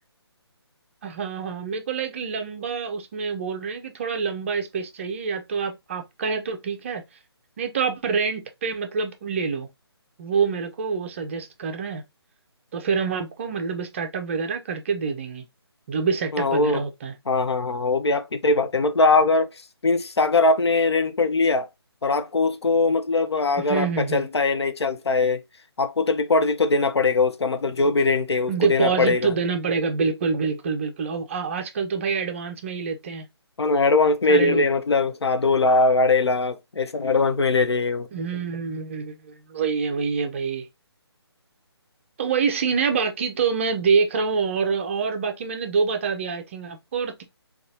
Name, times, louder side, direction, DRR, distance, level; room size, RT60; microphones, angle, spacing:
voice 1, 1.0-7.0 7.6-9.7 10.2-12.0 12.7-15.4 15.9-17.1 23.6-24.3 28.5-33.2 34.3-34.6 38.1-40.7 42.2-47.2, right 5 dB, 30° right, 0.5 m, -26 dB
voice 2, 16.3-16.8 17.3-19.5 19.8-21.7 22.0-25.4 25.8-29.3 33.6-38.1, left 3 dB, 75° left, 0.5 m, -21 dB
3.9 x 2.3 x 2.6 m
figure-of-eight pair, 150°, 14 cm